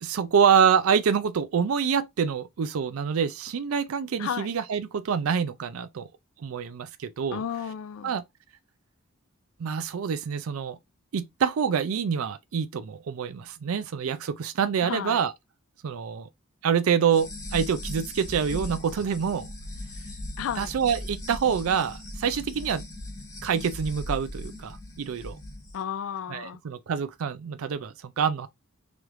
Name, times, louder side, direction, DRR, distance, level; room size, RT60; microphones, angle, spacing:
voice 1, 0.0-6.1 6.4-7.4 8.0-8.2 9.6-10.8 11.1-15.3 15.8-16.3 16.6-19.5 20.6-22.8 23.4-25.4 26.3-28.5, right 7 dB, 75° right, 0.4 m, -26 dB
voice 2, 4.2-4.5 7.3-8.1 14.8-15.2 20.4-20.7 25.7-26.6, left 8 dB, 70° left, 0.4 m, -33 dB
sound 1, 17.1-25.7, left 1 dB, 15° left, 1.1 m, -38 dB
3.3 x 3.1 x 3.6 m
head